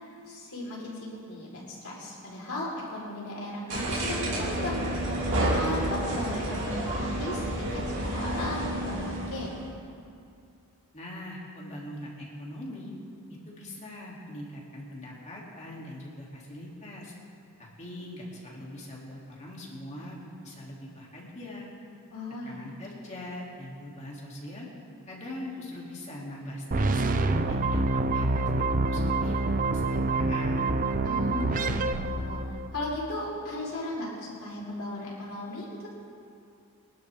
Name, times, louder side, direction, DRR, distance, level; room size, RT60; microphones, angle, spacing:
voice 1, 0.3-4.8 5.5-9.5 22.1-22.6 31.0-32.4 32.7-35.6, left 1 dB, 65° left, -4 dB, 4.4 m, -36 dB
sound 1, 3.7-9.7, right 1 dB, 55° right, 3.3 m, -30 dB
voice 2, 10.9-12.9 13.5-17.1 17.6-21.7 22.4-24.7 25.1-27.0 27.5-27.8 28.1-30.8, left 1 dB, 30° left, -4 dB, 2.9 m, -42 dB
sound 2, 26.7-32.9, right 2 dB, 40° right, 0.6 m, -26 dB
24.0 x 11.5 x 3.6 m, 2.4 s
head